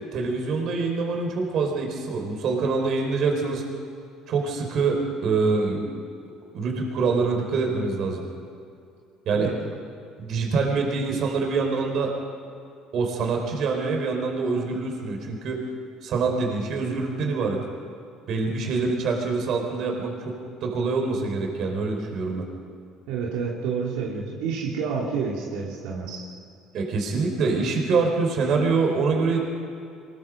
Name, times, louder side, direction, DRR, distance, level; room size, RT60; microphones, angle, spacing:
voice 1, 0.1-3.6 4.3-5.8 6.5-8.2 9.2-9.5 10.2-12.1 12.9-15.6 16.0-17.6 18.3-22.5 26.7-29.4, right 4 dB, 55° right, 2 dB, 4.9 m, -25 dB
voice 2, 23.1-26.2, right 5 dB, 90° right, -4 dB, 3.2 m, -29 dB
23.5 x 21.5 x 5.4 m, 2.4 s
cardioid pair, 115°, 0 cm